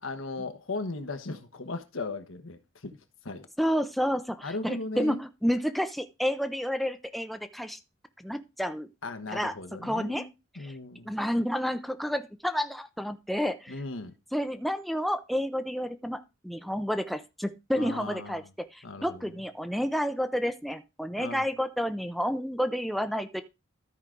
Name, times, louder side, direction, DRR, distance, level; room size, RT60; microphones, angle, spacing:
voice 1, 0.0-3.0 3.2-3.5 4.4-5.2 9.0-10.3 10.6-11.2 13.7-14.1 17.8-18.4 18.8-19.3 21.2-21.4, left 3 dB, 75° left, 1.2 m, -37 dB
voice 2, 3.6-7.8 8.2-8.9 9.3-9.5 9.8-10.3 10.6-10.7 11.1-13.7 14.3-16.2 16.4-18.4 18.7-23.4, equal, ahead, 0.5 m, -30 dB
13.0 x 4.8 x 3.8 m
head